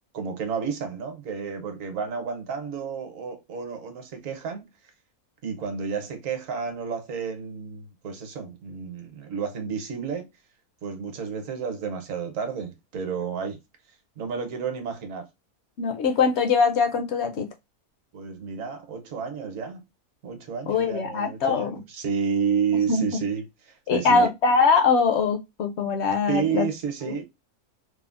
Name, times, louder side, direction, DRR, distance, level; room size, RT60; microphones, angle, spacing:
voice 1, 0.1-4.7 5.4-10.3 10.8-13.6 14.2-15.3 18.1-19.8 20.2-24.3 26.3-27.2, right 6 dB, 65° right, 1.1 m, -31 dB
voice 2, 15.8-17.5 20.7-21.7 22.9-23.0 23.9-26.7, left 5 dB, 65° left, 0.7 m, -22 dB
3.4 x 2.0 x 2.4 m
omnidirectional pair, 1.6 m